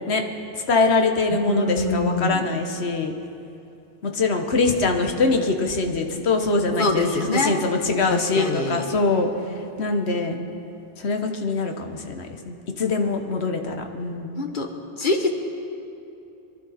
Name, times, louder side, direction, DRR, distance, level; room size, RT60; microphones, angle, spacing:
voice 1, 0.7-3.1 4.0-9.3 9.8-10.4 11.0-14.4, left 3 dB, 85° left, 5 dB, 1.4 m, -23 dB
voice 2, 1.3-2.6 6.8-7.6 8.1-8.8 14.4-14.7 15.0-15.3, left 2 dB, 50° left, 4 dB, 1.3 m, -24 dB
23.0 x 11.5 x 4.2 m, 2.7 s
omnidirectional pair, 1.1 m